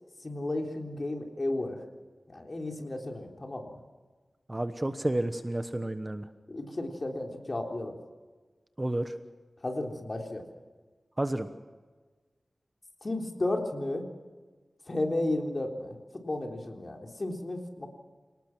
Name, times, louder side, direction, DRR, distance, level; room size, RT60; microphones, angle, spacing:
voice 1, 0.2-1.8 2.3-3.8 6.5-8.0 9.6-10.4 13.0-14.1 14.9-17.9, left 2 dB, 40° left, 3 dB, 3.8 m, -33 dB
voice 2, 4.5-6.2 8.8-9.1 11.2-11.5, right 1 dB, 20° right, 9 dB, 1.2 m, -30 dB
28.0 x 19.0 x 6.2 m, 1.3 s
wide cardioid pair, 95°, 0 cm